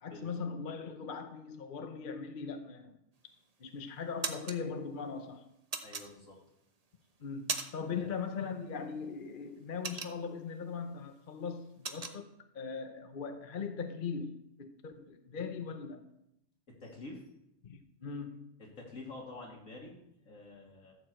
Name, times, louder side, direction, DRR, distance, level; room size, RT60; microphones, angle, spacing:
voice 1, 0.0-3.0 3.6-5.5 7.2-16.0 17.6-18.5, left 5 dB, 45° left, 7 dB, 0.9 m, -40 dB
sound 1, 3.2-3.6 4.0-4.6 5.7-6.6 7.0-8.0 8.2-8.5 8.9-10.6 11.0-11.1 11.4-12.2, right 4 dB, 35° right, 0.8 m, -38 dB
voice 2, 5.8-6.4 7.9-8.1 16.8-17.2 18.6-21.0, left 2 dB, 70° left, -2 dB, 3.2 m, -48 dB
13.0 x 4.9 x 7.6 m, 0.82 s
omnidirectional pair, 1.5 m